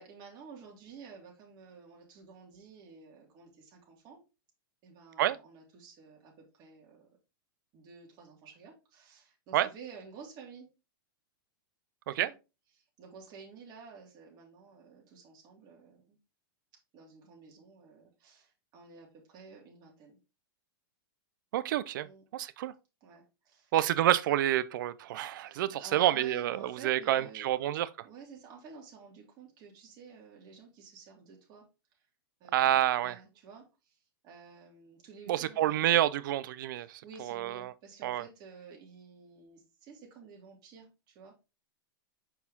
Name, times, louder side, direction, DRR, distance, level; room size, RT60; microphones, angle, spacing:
voice 1, 0.0-4.2 4.8-7.1 7.7-10.7 12.2-12.3 12.7-16.2 16.9-20.2 22.0-22.2 23.0-23.7 25.4-27.5 28.0-31.7 31.9-32.1 32.4-34.0 34.2-36.0 36.7-41.4, right 5 dB, 35° right, 2.4 m, -52 dB
voice 2, 21.5-22.1 22.3-22.7 23.7-27.9 32.5-33.2 35.3-37.7 38.0-38.2, right 13 dB, 60° right, 0.5 m, -28 dB
5.8 x 4.6 x 3.5 m
supercardioid pair, 150°, 12 cm